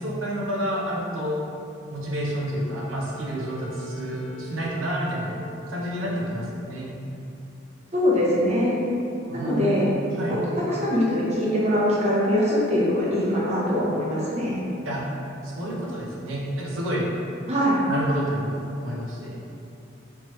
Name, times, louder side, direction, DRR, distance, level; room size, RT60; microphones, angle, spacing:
voice 1, 0.0-1.4 1.9-5.3 5.7-6.9 9.3-10.4 14.8-15.0 15.4-17.1 17.9-19.4, equal, 85° right, -4 dB, 0.7 m, -29 dB
Wind instrument woodwind instrument, 2.0-6.4, right 2 dB, 40° left, 0.5 m, -45 dB
voice 2, 7.9-8.8 9.3-9.9 10.3-14.6 17.5-17.8, equal, 35° right, -7 dB, 0.7 m, -23 dB
3.5 x 2.9 x 3.0 m, 2.7 s
head